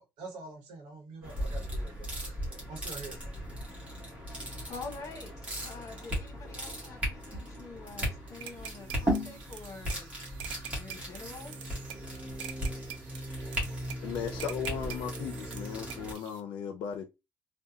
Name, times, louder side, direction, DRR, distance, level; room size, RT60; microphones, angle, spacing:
voice 1, 0.0-2.3 2.7-3.3, right 3 dB, 65° right, 1.1 m, -46 dB
sound 1, 1.2-16.1, equal, 15° right, 1.4 m, -37 dB
voice 2, 4.7-10.1 10.6-11.6, left 4 dB, 40° left, 1.1 m, -46 dB
sound 2, 8.4-16.4, right 9 dB, 85° right, 0.7 m, -46 dB
voice 3, 14.0-17.0, left 8 dB, 65° left, 0.5 m, -37 dB
3.6 x 2.2 x 2.7 m
cardioid pair, 165°, 8 cm